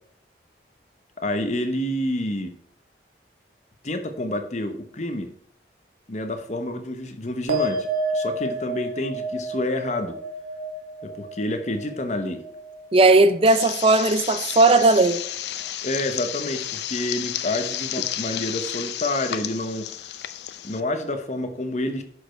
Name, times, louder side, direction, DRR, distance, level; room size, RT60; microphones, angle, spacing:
voice 1, 1.2-2.5 3.8-5.3 6.1-10.2 11.0-12.4 15.8-19.9 20.6-22.0, left 1 dB, 40° left, 0.9 m, -28 dB
sound 1, 7.5-14.2 14.5-15.1, right 1 dB, 65° right, 1.5 m, -31 dB
voice 2, 12.9-15.2, right 2 dB, 30° right, 0.5 m, -17 dB
sound 2, 13.5-20.8, left 11 dB, 75° left, 0.5 m, -32 dB
11.0 x 5.1 x 4.5 m
head